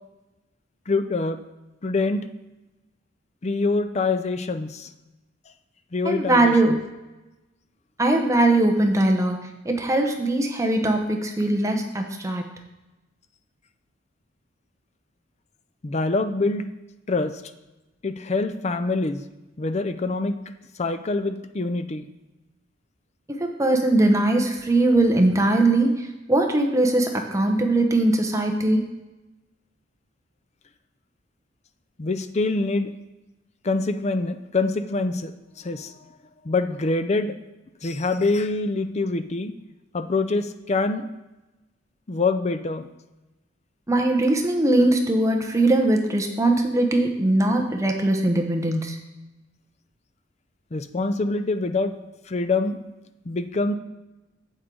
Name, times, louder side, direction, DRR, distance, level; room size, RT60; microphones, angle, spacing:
voice 1, 0.9-1.4 1.8-2.2 3.4-4.9 5.9-6.8 15.8-16.7 17.1-17.4 18.0-19.2 19.6-20.4 20.8-22.1 32.0-32.9 33.6-35.3 35.6-36.0 36.4-37.4 37.8-39.5 39.9-41.1 42.1-42.8 50.7-51.9 52.3-52.8 53.3-53.7, left 3 dB, 35° left, 9 dB, 0.5 m, -25 dB
voice 2, 6.0-6.8 8.0-9.4 9.6-12.5 23.3-28.8 43.9-49.0, right 2 dB, 15° right, 3 dB, 0.9 m, -21 dB
8.1 x 7.8 x 3.9 m, 1.0 s
head